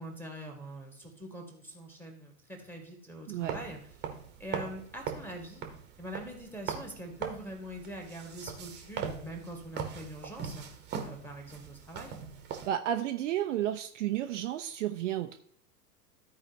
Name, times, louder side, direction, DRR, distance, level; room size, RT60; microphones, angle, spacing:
voice 1, 0.0-3.8 4.4-5.6 6.0-10.7 11.0-12.2, right 1 dB, 5° left, 0 dB, 1.9 m, -43 dB
sound 1, 3.4-12.7, right 7 dB, 25° right, 1.2 m, -41 dB
voice 2, 12.7-15.4, right 11 dB, 50° right, 6 dB, 0.6 m, -32 dB
14.0 x 4.8 x 3.0 m, 0.63 s
figure-of-eight pair, 95°, 46 cm